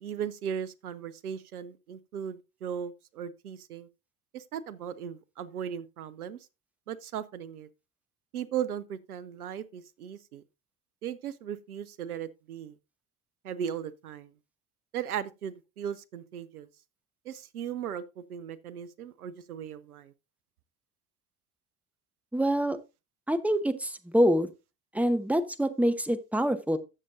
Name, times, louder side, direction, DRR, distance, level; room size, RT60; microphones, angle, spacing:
voice 1, 0.0-3.9 4.3-6.4 6.9-7.7 8.3-10.4 11.0-12.7 13.4-14.3 14.9-16.7 17.3-20.1, right 8 dB, 90° right, 0.6 m, -37 dB
voice 2, 22.3-22.8 23.3-24.5 24.9-26.8, equal, 5° right, 1.0 m, -25 dB
15.0 x 6.5 x 2.6 m
hypercardioid pair, 60°, 43 cm